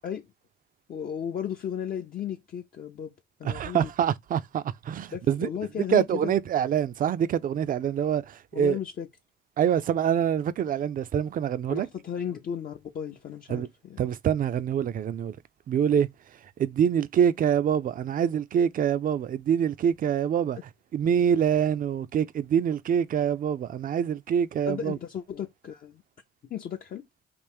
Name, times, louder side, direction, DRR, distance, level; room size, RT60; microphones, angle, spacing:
voice 1, 0.9-3.1 3.4-3.9 5.1-6.3 8.5-9.1 11.7-14.1 24.7-26.0 26.4-27.0, left 8 dB, 45° left, 0.5 m, -35 dB
voice 2, 3.4-5.5 5.9-8.8 9.6-11.9 13.5-13.7 14.0-15.4 15.7-16.1 16.6-20.6 20.9-25.0, right 8 dB, 45° right, 0.4 m, -25 dB
3.3 x 2.5 x 3.4 m
cardioid pair, 90°, 20 cm